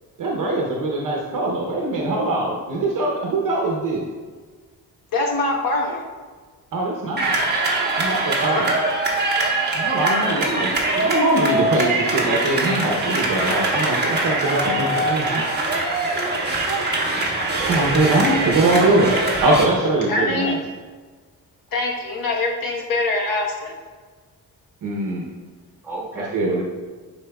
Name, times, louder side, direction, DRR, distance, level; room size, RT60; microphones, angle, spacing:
voice 1, 0.2-4.1 6.7-7.4 8.0-8.7 9.7-13.9 14.2-15.4 17.7-19.1 19.4-20.6 24.8-25.2 26.3-26.6, right 2 dB, 65° right, -1 dB, 0.8 m, -22 dB
voice 2, 5.1-6.0 8.5-8.9 20.1-20.7 21.7-23.7, left 2 dB, 75° left, -1 dB, 1.2 m, -24 dB
sound 1, 7.2-19.7, right 2 dB, 30° right, 1.2 m, -22 dB
voice 3, 9.6-9.9 10.2-10.7 13.7-14.4 14.8-14.9 15.2-15.8 16.1-16.4 16.7-16.8 17.6-18.6 25.8-26.6, right 3 dB, 5° right, -7 dB, 1.4 m, -34 dB
10.0 x 4.4 x 2.3 m, 1.5 s
wide cardioid pair, 155°, 35 cm